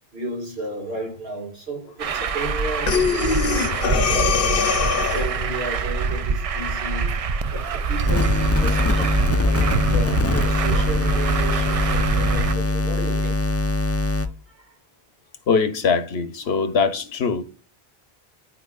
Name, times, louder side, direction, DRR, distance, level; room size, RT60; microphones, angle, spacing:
voice 1, 0.1-7.2 7.5-13.7 14.5-14.7, right 1 dB, 75° right, 2.3 m, -33 dB
Truck, 2.0-12.5, right 5 dB, 50° right, 0.4 m, -25 dB
Breathing, 2.9-5.4, left 6 dB, 65° left, 0.9 m, -22 dB
sound 1, 8.1-14.3, left 2 dB, 20° left, 0.4 m, -22 dB
voice 2, 15.5-17.4, left 5 dB, 85° left, 1.2 m, -22 dB
12.0 x 4.5 x 2.4 m
omnidirectional pair, 1.0 m